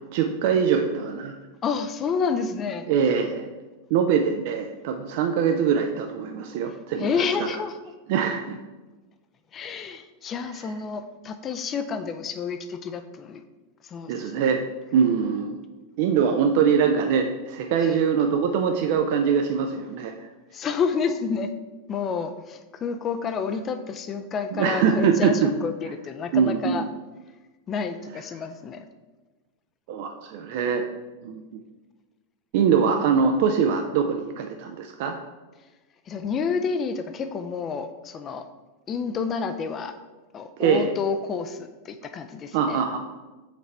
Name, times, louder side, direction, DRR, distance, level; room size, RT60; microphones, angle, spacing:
voice 1, 0.1-1.4 2.9-3.5 3.9-7.5 8.1-8.6 14.1-14.6 14.9-15.6 16.0-20.3 24.5-25.5 26.3-26.8 29.9-30.8 31.2-31.4 32.5-35.2 40.6-40.9 42.5-43.0, right 7 dB, 50° right, 5 dB, 0.4 m, -23 dB
voice 2, 1.6-2.9 7.0-7.8 9.5-13.4 13.8-14.3 17.8-18.0 20.5-21.5 21.9-26.8 27.7-28.8 36.1-38.5 38.9-40.0 40.3-42.8, left 5 dB, 25° left, 9 dB, 0.4 m, -29 dB
5.9 x 4.1 x 4.4 m, 1.2 s
figure-of-eight pair, 90°, 0 cm